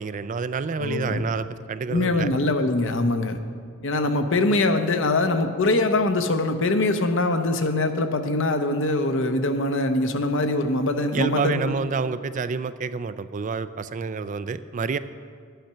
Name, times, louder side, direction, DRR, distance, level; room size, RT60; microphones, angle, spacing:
voice 1, 0.0-2.3 11.1-15.0, right 5 dB, 35° right, 13 dB, 0.3 m, -28 dB
voice 2, 0.8-1.2 1.9-3.4 3.8-11.7, left 2 dB, 60° left, 7 dB, 0.9 m, -23 dB
11.5 x 9.1 x 5.7 m, 2.2 s
head